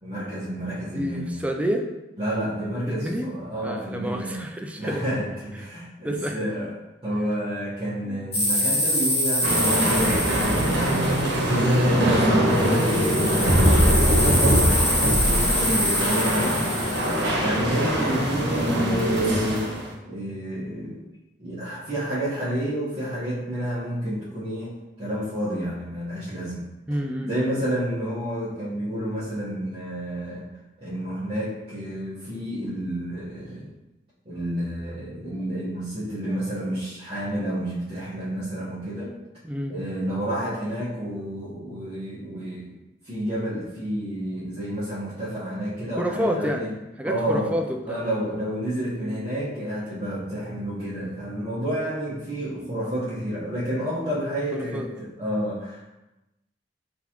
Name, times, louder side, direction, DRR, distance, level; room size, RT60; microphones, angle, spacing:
voice 1, 0.0-1.4 2.2-4.4 4.8-6.7 7.0-16.6 17.3-19.7 20.0-21.0 21.4-26.7 27.2-30.4 30.8-33.7 34.2-39.2 39.7-42.7 43.0-46.7 47.0-47.5 47.8-55.9, right 1 dB, 35° right, -12 dB, 1.1 m, -30 dB
voice 2, 0.9-1.9 2.9-3.3 3.6-5.0 6.0-6.4 8.0-8.2 18.2-18.4 26.9-27.7 39.4-39.7 46.0-46.6 47.0-48.0 48.8-49.2 52.5-52.9 54.5-55.1, equal, 10° right, 3 dB, 0.3 m, -29 dB
sound 1, 8.3-11.9 12.5-17.3, left 1 dB, 35° left, 1.3 m, -25 dB
sound 2, 9.4-19.9, equal, 70° right, 1.1 m, -22 dB
3.8 x 3.6 x 3.0 m, 0.99 s
head